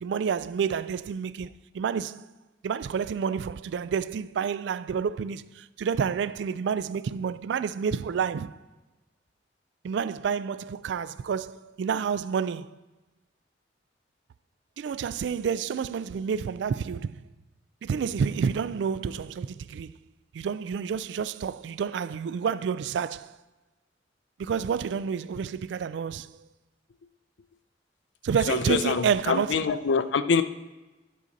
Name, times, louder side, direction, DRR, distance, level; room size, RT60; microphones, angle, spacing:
voice 1, 0.0-1.5 1.7-2.2 2.6-8.6 9.8-12.7 14.8-17.2 17.8-19.9 20.3-23.4 24.4-26.3 28.2-29.8, right 6 dB, 70° right, 0.3 m, -29 dB
voice 2, 28.5-30.4, left 5 dB, 80° left, 0.5 m, -25 dB
10.0 x 4.0 x 5.1 m
head